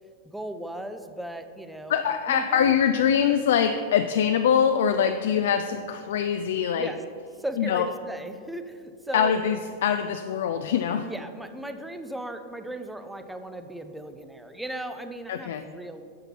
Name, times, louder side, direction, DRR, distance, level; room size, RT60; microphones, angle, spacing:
voice 1, 0.2-1.9 2.3-2.8 5.3-5.5 6.5-7.0 7.4-9.3 11.0-16.0, right 1 dB, 5° right, 8 dB, 0.6 m, -37 dB
voice 2, 1.9-6.9 7.6-7.9 9.1-11.1 15.3-15.6, left 8 dB, 60° left, 8 dB, 0.3 m, -23 dB
10.0 x 6.6 x 4.1 m, 2.2 s
figure-of-eight pair, 90°, 0 cm